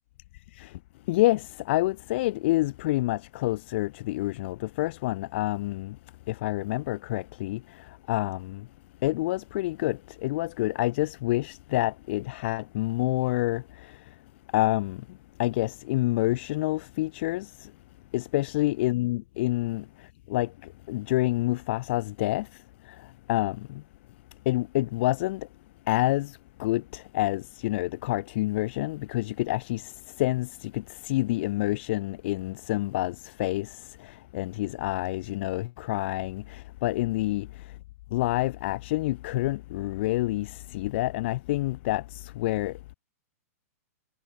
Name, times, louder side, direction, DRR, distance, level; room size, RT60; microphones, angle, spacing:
voice 1, 1.1-6.0 6.3-8.7 9.0-14.0 14.5-15.0 15.4-17.7 18.1-20.5 20.9-22.5 22.9-23.8 24.5-25.5 25.9-37.5 38.1-42.7, left 18 dB, 45° left, 0.7 m, -28 dB
hypercardioid pair, 150°, 9 cm